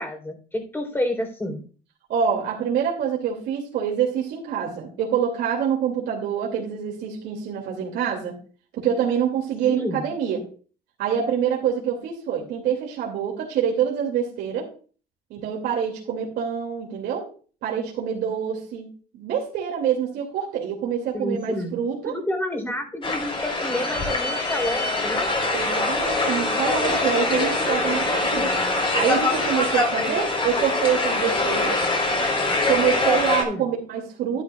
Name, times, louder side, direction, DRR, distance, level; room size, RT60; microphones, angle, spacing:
voice 1, 0.0-1.6 9.7-10.1 21.1-21.8 22.0-25.3 33.5-33.7, left 1 dB, 15° left, 4 dB, 3.7 m, -29 dB
voice 2, 2.1-8.4 8.8-10.4 11.0-14.7 15.3-17.3 17.6-18.9 19.1-22.2 25.5-28.5 28.9-31.8 32.7-34.4, right 8 dB, 75° right, -2 dB, 2.6 m, -26 dB
sound 1, 23.0-33.4, left 2 dB, 30° left, 3.8 m, -23 dB
11.5 x 11.0 x 2.4 m, 0.39 s
cardioid pair, 110°, 17 cm